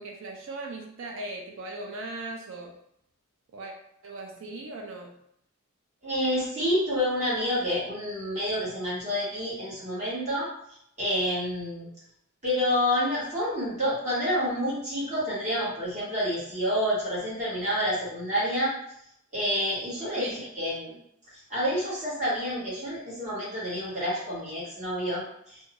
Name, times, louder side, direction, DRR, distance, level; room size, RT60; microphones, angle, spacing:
voice 1, 0.0-2.7 3.5-3.7 4.0-5.1 20.2-20.4, right 2 dB, 65° right, 1 dB, 0.4 m, -38 dB
voice 2, 6.0-10.5 11.0-11.9 12.4-18.7 19.3-20.9 21.5-25.6, equal, 35° right, -9 dB, 1.4 m, -28 dB
2.6 x 2.3 x 2.9 m, 0.73 s
head